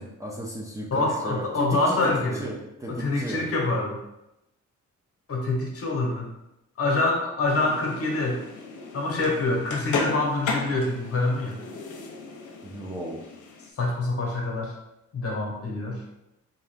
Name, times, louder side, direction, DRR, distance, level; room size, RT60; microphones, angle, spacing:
voice 1, 0.0-3.4 12.6-13.2, equal, 10° right, -3 dB, 0.6 m, -35 dB
voice 2, 0.9-2.5 2.9-4.0 5.3-6.3 6.8-8.4 8.9-11.6 13.8-14.7 15.1-16.0, left 2 dB, 50° left, 0 dB, 1.0 m, -26 dB
sound 1, 7.5-13.7, left 4 dB, 75° left, 0.7 m, -35 dB
3.7 x 2.7 x 3.4 m, 0.87 s
cardioid pair, 115°, 31 cm